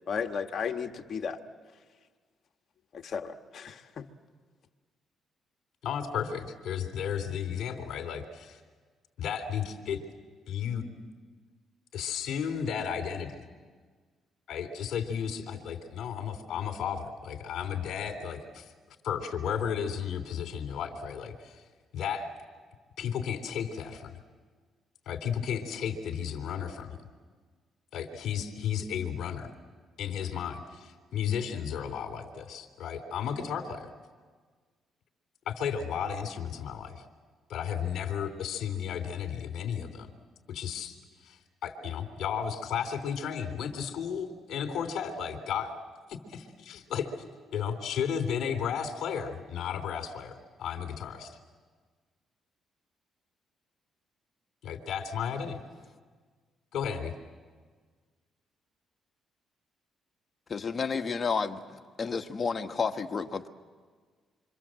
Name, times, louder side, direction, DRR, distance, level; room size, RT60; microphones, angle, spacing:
voice 1, 0.1-1.4 2.9-4.1, left 6 dB, 55° left, 5 dB, 1.6 m, -34 dB
voice 2, 5.8-8.6 9.2-10.0 10.5-10.8 11.9-13.4 14.5-18.7 19.0-21.6 21.9-22.3 23.0-24.2 25.0-27.0 27.9-29.5 30.0-33.9 35.4-37.0 37.5-40.1 40.5-45.7 46.1-47.1 47.5-50.3 50.6-51.4 54.6-55.6 56.7-57.1, left 8 dB, 70° left, 5 dB, 3.3 m, -33 dB
voice 3, 60.5-61.6 62.0-63.5, left 5 dB, 40° left, 6 dB, 1.5 m, -30 dB
27.0 x 25.5 x 7.7 m, 1.5 s
cardioid pair, 90°, 0 cm